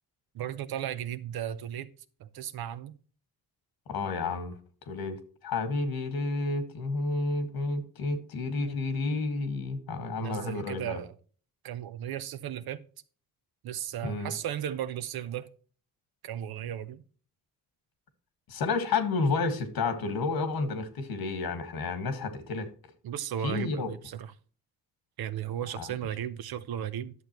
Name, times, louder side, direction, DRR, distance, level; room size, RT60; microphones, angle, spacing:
voice 1, 0.3-1.9 2.2-2.9 10.2-11.1 11.6-12.8 13.6-15.5 16.2-17.0 23.0-24.3 25.2-27.1, right 10 dB, 85° right, 0.8 m, -35 dB
voice 2, 3.9-4.6 4.9-11.0 14.0-14.3 18.5-22.7 23.4-23.9 25.8-25.9, left 3 dB, 85° left, 1.8 m, -31 dB
11.0 x 6.8 x 3.0 m
cardioid pair, 85°, 36 cm